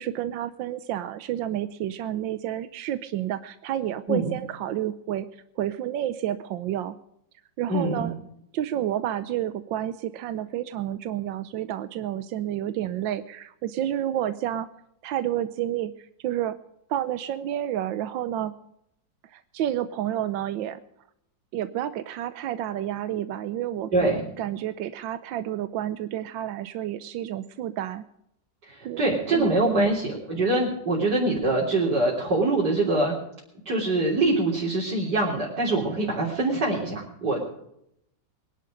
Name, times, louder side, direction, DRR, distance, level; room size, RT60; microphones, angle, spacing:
voice 1, 0.0-7.0 7.6-8.1 8.5-14.7 15.0-16.6 16.9-18.5 19.2-20.8 21.5-28.0 28.8-29.0 29.3-30.0, right 11 dB, 90° right, 12 dB, 1.5 m, -30 dB
voice 2, 7.7-8.1 23.9-24.3 28.7-33.1 33.7-37.5, right 2 dB, 60° right, -4 dB, 4.3 m, -24 dB
23.0 x 11.0 x 5.2 m, 0.76 s
omnidirectional pair, 2.0 m